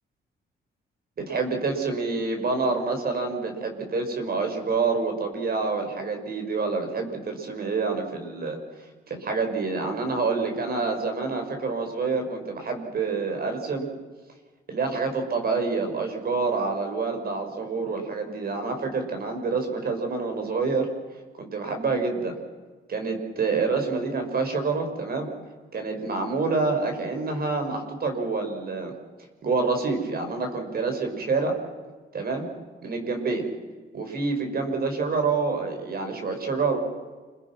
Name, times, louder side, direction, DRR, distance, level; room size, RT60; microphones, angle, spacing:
voice 1, 1.2-8.6 9.1-13.9 14.7-20.9 21.4-22.3 22.9-25.3 25.7-28.9 29.4-31.6 32.1-32.5 32.8-33.5 33.9-36.8, right 4 dB, 50° right, 4 dB, 6.0 m, -27 dB
29.0 x 23.0 x 6.2 m, 1.4 s
cardioid pair, 90°, 20 cm